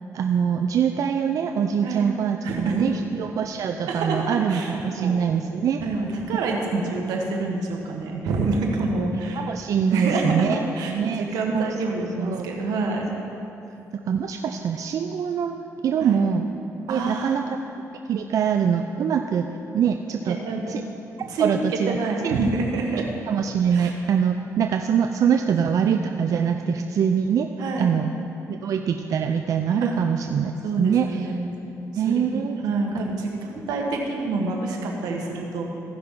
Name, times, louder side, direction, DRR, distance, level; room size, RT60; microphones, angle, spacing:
voice 1, 0.1-5.8 9.4-10.6 10.9-11.2 11.5-11.7 12.2-12.5 14.1-16.5 16.9-17.4 18.1-19.5 19.7-20.4 20.7-20.8 21.4-22.0 22.2-22.4 22.9-27.5 27.8-28.1 28.5-30.5 30.8-31.2 31.9-32.6 32.9-33.1, right 7 dB, 60° right, 5 dB, 0.4 m, -24 dB
voice 2, 2.4-2.8 3.8-5.2 5.8-9.5 9.9-13.2 16.0-16.2 16.9-17.4 20.2-20.6 21.3-21.5 22.0-23.0 23.7-23.9 27.6-28.0 29.8-29.9 30.6-31.6 31.9-35.6, right 3 dB, 90° right, 1 dB, 1.3 m, -27 dB
15.5 x 5.8 x 3.7 m, 2.9 s
cardioid pair, 75°, 6 cm